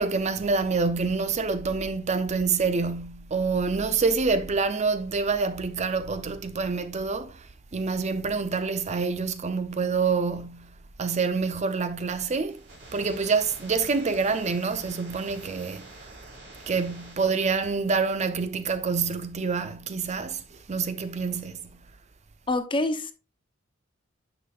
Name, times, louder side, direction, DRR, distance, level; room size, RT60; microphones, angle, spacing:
voice 1, 0.0-7.5 7.7-12.6 12.9-15.9 16.7-21.7, right 4 dB, 35° right, 0.5 m, -27 dB
sound 1, 12.5-17.5, right 2 dB, 65° right, 3.0 m, -47 dB
voice 2, 22.5-23.1, left 2 dB, 25° left, 0.7 m, -26 dB
9.7 x 5.7 x 2.4 m
head